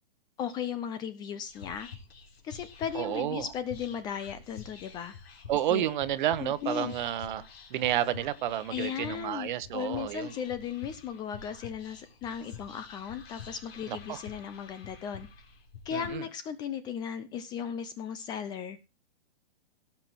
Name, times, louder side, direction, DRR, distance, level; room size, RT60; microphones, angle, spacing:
voice 1, 0.4-1.9 2.4-5.1 5.7-5.8 6.4-6.9 8.7-15.3 15.8-18.8, left 8 dB, 15° left, 0.5 m, -36 dB
Whispering, 1.4-16.1, left 6 dB, 80° left, 4.2 m, -48 dB
voice 2, 2.9-3.5 5.5-10.3 13.9-14.2 15.9-16.2, right 12 dB, 50° right, 1.1 m, -31 dB
17.0 x 6.0 x 4.5 m
hypercardioid pair, 150°, 30 cm